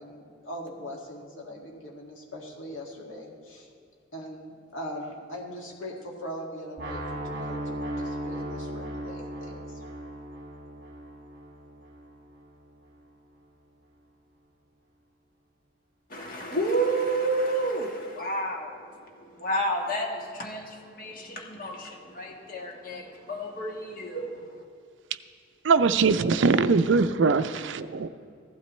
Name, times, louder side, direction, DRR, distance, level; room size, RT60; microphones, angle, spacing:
voice 1, 0.0-3.7 4.1-9.8, equal, 80° left, -2 dB, 2.1 m, -41 dB
sound 1, 6.8-12.7, right 1 dB, 50° right, 1.5 m, -37 dB
voice 2, 16.1-24.6, right 1 dB, 45° left, 0 dB, 1.5 m, -30 dB
voice 3, 25.6-28.1, right 4 dB, 70° right, 12 dB, 0.4 m, -22 dB
15.5 x 12.0 x 3.1 m, 2.3 s
head